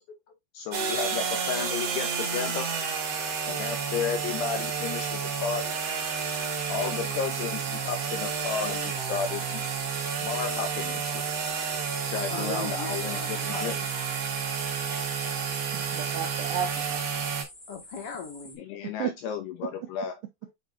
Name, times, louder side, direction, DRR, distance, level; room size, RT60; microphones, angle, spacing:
voice 1, 0.5-2.7 3.5-5.8 6.7-9.7 10.2-11.2 12.1-13.7 18.6-20.2, left 7 dB, 90° left, 2.3 m, -33 dB
sound 1, 0.7-17.4, right 6 dB, 55° right, 1.7 m, -30 dB
voice 2, 1.2-1.5 6.8-6.9 12.3-13.9 15.3-16.1 17.7-18.6, left 5 dB, 50° left, 1.8 m, -41 dB
sound 2, 8.2-18.5, left 2 dB, 15° left, 1.7 m, -49 dB
voice 3, 12.3-12.7 15.7-17.3 19.0-19.1, right 9 dB, 80° right, 2.5 m, -34 dB
7.3 x 5.5 x 2.6 m
omnidirectional pair, 5.4 m